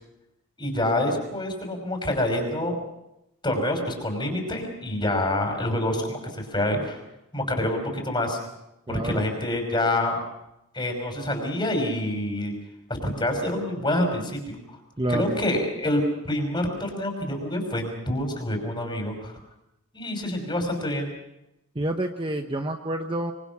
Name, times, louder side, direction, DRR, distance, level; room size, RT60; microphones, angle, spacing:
voice 1, 0.6-2.8 3.4-7.0 7.3-8.4 8.9-10.2 10.7-12.5 13.0-14.6 15.1-19.4 19.9-21.1, left 1 dB, 20° left, 3 dB, 5.5 m, -27 dB
voice 2, 8.9-9.3 15.0-15.4 21.7-23.3, right 1 dB, 20° right, 5 dB, 0.9 m, -28 dB
24.5 x 24.5 x 6.1 m, 0.89 s
head